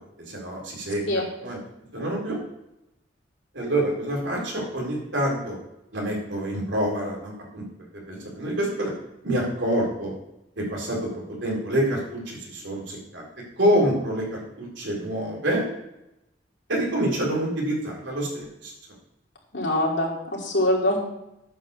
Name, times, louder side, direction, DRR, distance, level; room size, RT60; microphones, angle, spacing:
voice 1, 0.3-1.6 1.9-2.4 3.5-5.6 5.9-7.6 8.1-8.9 9.2-10.1 10.6-11.1 11.4-13.2 13.6-15.7 16.7-18.7, right 1 dB, 70° right, -2 dB, 3.8 m, -27 dB
voice 2, 19.5-21.0, left 1 dB, 65° left, -3 dB, 3.1 m, -23 dB
9.2 x 4.8 x 6.8 m, 0.87 s
head